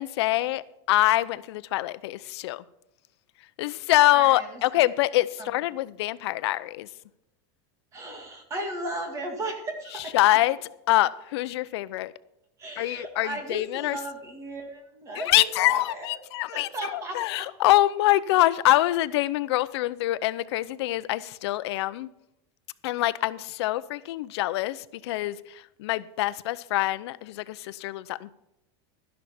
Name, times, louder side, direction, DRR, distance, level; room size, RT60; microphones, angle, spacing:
voice 1, 0.0-2.6 3.6-6.9 10.1-10.6 10.9-12.1 12.8-14.0 15.2-22.1 22.8-28.3, left 16 dB, 70° left, 0.6 m, -25 dB
voice 2, 4.1-4.8 5.4-5.6 7.9-10.2 12.6-16.2 16.5-17.5, right 1 dB, 20° right, 2.0 m, -36 dB
12.5 x 11.0 x 4.3 m
supercardioid pair, 180°, 14 cm